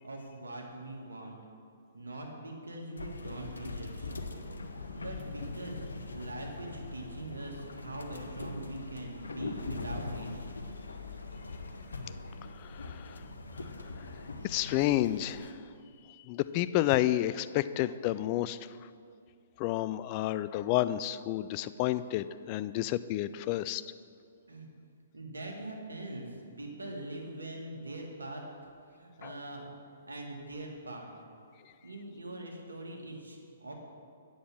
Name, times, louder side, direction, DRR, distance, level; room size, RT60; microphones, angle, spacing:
voice 1, 0.0-1.4 1.9-4.4 4.9-5.8 6.1-10.3 24.5-24.7 25.1-26.3 26.6-28.4 29.0-29.7 30.1-31.1 31.8-33.7, right 2 dB, 80° right, 1 dB, 1.8 m, -42 dB
sound 1, 3.0-15.5, left 3 dB, 75° left, 0.8 m, -42 dB
voice 2, 12.5-13.2 14.0-14.1 14.4-15.6 16.3-18.6 19.6-23.8 29.2-29.3, left 14 dB, 35° left, 14 dB, 0.3 m, -30 dB
8.8 x 7.1 x 6.2 m, 2.4 s
figure-of-eight pair, 125°, 0 cm